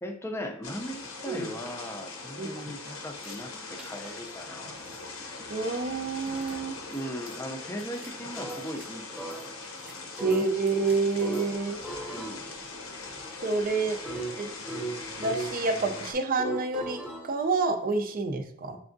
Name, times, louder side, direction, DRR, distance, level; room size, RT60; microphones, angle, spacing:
voice 1, 0.0-4.8 6.8-9.4 12.1-12.5, equal, 10° left, 4 dB, 0.5 m, -38 dB
sound 1, 0.6-16.1, left 3 dB, 85° left, 0.9 m, -41 dB
sound 2, 3.2-3.3 3.8-4.3 4.9-5.0 6.2-6.5 6.9-7.0 7.3-7.4 7.8-8.9 9.2-11.5 11.8-15.5 16.4-18.2, right 3 dB, 5° right, 0.9 m, -39 dB
voice 2, 5.5-6.8 10.2-11.8 13.4-14.0 14.4-14.5 15.2-18.8, right 3 dB, 40° right, 7 dB, 0.4 m, -28 dB
5.9 x 3.4 x 2.6 m, 0.65 s
head